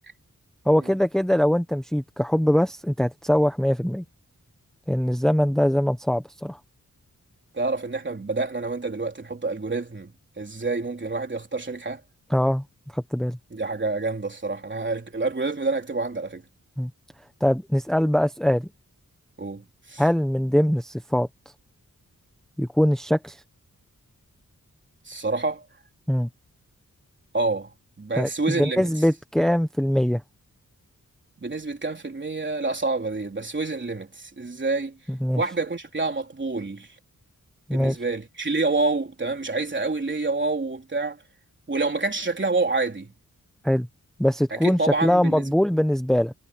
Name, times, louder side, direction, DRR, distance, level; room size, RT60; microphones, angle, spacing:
voice 1, 0.6-4.0 4.9-6.6 12.3-12.6 12.9-13.4 16.8-16.9 17.4-18.7 20.0-21.3 22.6-23.4 26.1-26.3 28.2-28.3 28.6-30.2 35.1-35.4 37.7-38.0 43.6-43.9 44.2-46.3, equal, ahead, 1.0 m, -22 dB
voice 2, 7.5-12.0 13.5-16.4 19.4-20.0 25.1-25.7 27.3-28.9 31.4-35.0 35.4-37.0 37.7-41.2 41.7-43.1 44.5-45.5, right 3 dB, 35° right, 3.7 m, -28 dB
wide cardioid pair, 125°, 33 cm